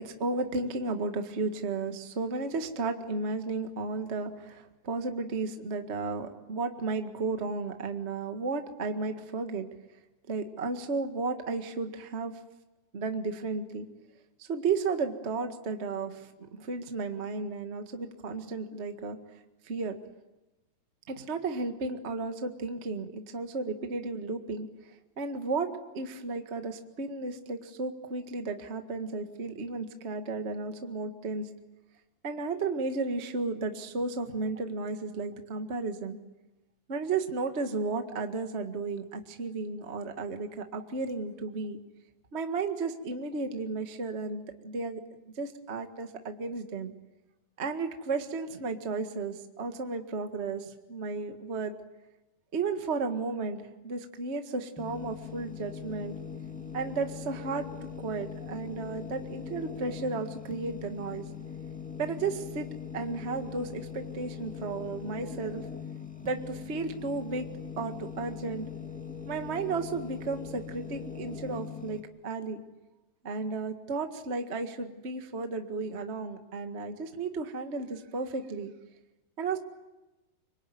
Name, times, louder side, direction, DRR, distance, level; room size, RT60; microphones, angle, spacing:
voice 1, 0.0-9.7 10.3-12.3 12.9-13.9 14.4-19.2 19.6-20.0 21.1-31.5 32.2-36.2 36.9-41.8 42.3-46.9 47.6-51.7 52.5-56.1 56.7-57.7 58.0-61.2 62.0-62.7 62.9-65.6 66.2-67.5 67.8-68.7 69.2-72.6 73.2-78.7 79.4-79.6, right 4 dB, 65° right, 6 dB, 0.6 m, -33 dB
sound 1, 54.8-72.0, left 7 dB, 10° left, 0.4 m, -41 dB
25.5 x 23.5 x 9.4 m, 1.0 s
omnidirectional pair, 4.4 m